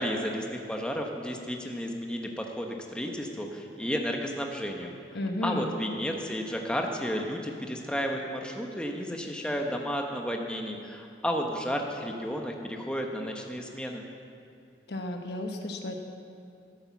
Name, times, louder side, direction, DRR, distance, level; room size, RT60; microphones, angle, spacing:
voice 1, 0.0-4.9 5.4-14.0, equal, 5° left, 2 dB, 0.9 m, -32 dB
voice 2, 5.1-5.7 14.9-15.9, left 1 dB, 70° left, 4 dB, 1.2 m, -33 dB
13.0 x 8.6 x 7.2 m, 2.5 s
head